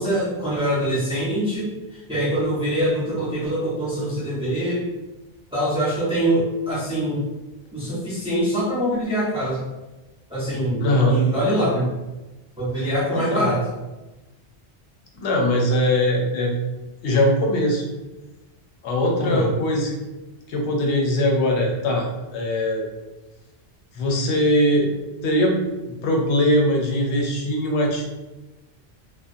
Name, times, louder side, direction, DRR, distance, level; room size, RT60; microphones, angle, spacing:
voice 1, 0.0-4.9 5.5-7.2 7.7-9.6 10.3-11.9 12.6-13.6 19.2-19.5, equal, 5° right, -8 dB, 0.6 m, -24 dB
voice 2, 10.8-11.2 13.1-13.5 15.1-16.5 17.0-17.8 18.8-20.0 20.5-22.8 23.9-24.9 25.2-25.6 26.0-28.1, left 1 dB, 85° left, 0 dB, 0.9 m, -21 dB
2.3 x 2.2 x 2.6 m, 1.1 s
omnidirectional pair, 1.1 m